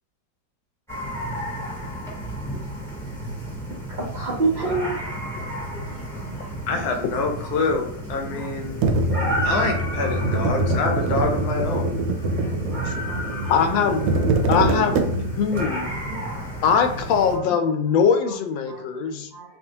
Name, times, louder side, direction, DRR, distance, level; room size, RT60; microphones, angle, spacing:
sound 1, 0.9-17.4, right 1 dB, ahead, 1.0 m, -32 dB
voice 1, 4.1-5.0 5.9-6.0 6.3-6.4 9.0-9.3 12.4-12.5 13.1-13.4 16.1-16.4 18.7-18.9 19.3-19.4, right 3 dB, 60° right, -5 dB, 0.4 m, -28 dB
voice 2, 6.7-8.8 9.4-12.0 17.4-17.6, left 3 dB, 65° left, 3 dB, 1.1 m, -26 dB
sound 2, 8.8-15.5, right 2 dB, 85° right, 1.3 m, -24 dB
voice 3, 13.5-14.1 14.5-15.1 15.4-15.9 16.6-19.3, left 6 dB, 90° left, 6 dB, 1.3 m, -21 dB
4.5 x 2.7 x 2.8 m, 0.66 s
omnidirectional pair, 2.0 m